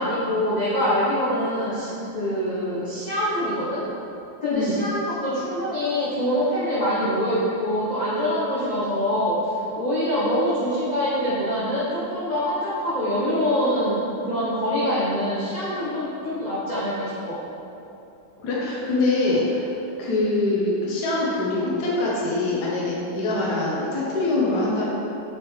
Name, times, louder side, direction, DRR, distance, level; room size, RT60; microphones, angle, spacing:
voice 1, 0.0-3.8 4.4-14.0 14.2-17.4, equal, 35° left, -9 dB, 0.8 m, -24 dB
voice 2, 4.5-4.8 18.4-19.7 20.0-24.9, left 2 dB, 65° left, -5 dB, 1.6 m, -24 dB
6.3 x 5.6 x 3.2 m, 2.8 s
omnidirectional pair, 2.0 m